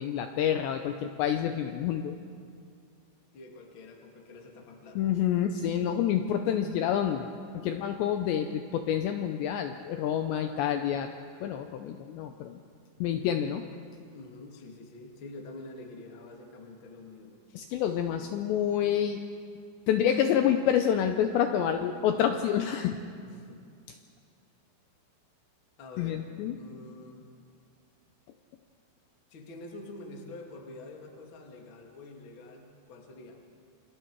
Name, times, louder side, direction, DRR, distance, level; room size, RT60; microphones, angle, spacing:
voice 1, 0.0-2.2 5.0-11.1 11.4-12.6 13.0-13.6 17.5-19.2 19.9-23.0 26.0-26.6, left 9 dB, 80° left, 6 dB, 2.7 m, -28 dB
voice 2, 3.3-5.1 14.1-17.6 23.2-23.6 25.8-26.2 26.6-27.2 29.3-33.4, left 2 dB, 45° left, 1 dB, 1.6 m, -47 dB
28.0 x 26.0 x 4.7 m, 2.3 s
omnidirectional pair, 5.7 m